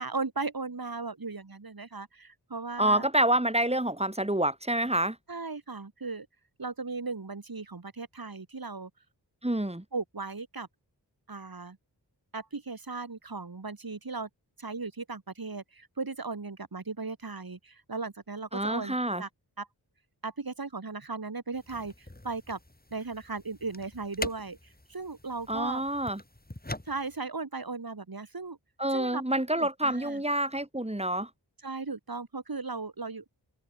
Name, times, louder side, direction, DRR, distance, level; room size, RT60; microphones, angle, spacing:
voice 1, 0.0-3.1 5.3-6.3 6.6-8.9 9.9-10.7 11.3-11.8 12.3-14.3 14.6-19.3 19.6-19.7 20.2-22.6 22.9-24.6 24.9-25.8 26.9-28.6 28.9-29.2 29.5-30.2 31.6-33.3, right 4 dB, 55° right, 3.3 m, -37 dB
voice 2, 2.8-5.2 9.4-9.8 18.5-19.2 25.5-26.2 28.8-31.3, right 1 dB, 15° right, 2.8 m, -27 dB
sound 1, 21.5-27.2, left 1 dB, 20° left, 4.4 m, -44 dB
wide cardioid pair, 50°, 42 cm